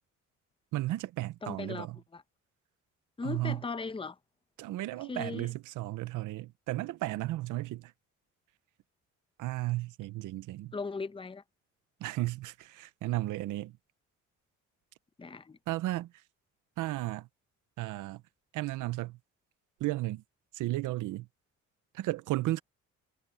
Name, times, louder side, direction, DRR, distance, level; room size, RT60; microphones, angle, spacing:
voice 1, 0.7-2.0 3.2-3.6 4.6-7.9 9.4-10.7 12.0-13.8 15.7-16.1 16.8-17.3 17.8-18.2 18.5-19.2 19.8-20.2 20.5-21.3 21.9-22.6, right 17 dB, 85° right, 0.8 m, -34 dB
voice 2, 1.4-1.9 2.1-2.2 3.2-4.2 5.1-5.5 10.7-11.4 15.2-15.6, left 4 dB, 20° left, 0.8 m, -37 dB
cardioid pair, 90°, 30 cm